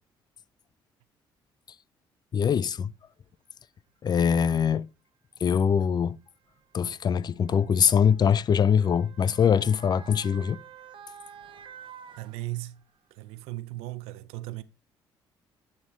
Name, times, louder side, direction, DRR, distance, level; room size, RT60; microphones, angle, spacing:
voice 1, 2.3-2.9 4.0-4.9 5.4-6.2 6.7-10.6, left 7 dB, 45° left, 0.4 m, -23 dB
Motor vehicle (road) / Siren, 3.0-3.1 4.1-4.3 5.4-13.0 13.4-13.5, right 8 dB, 60° right, 1.0 m, -50 dB
voice 2, 12.2-12.8 13.2-14.6, right 17 dB, 90° right, 0.5 m, -36 dB
11.5 x 4.3 x 3.1 m
supercardioid pair, 65°, 10 cm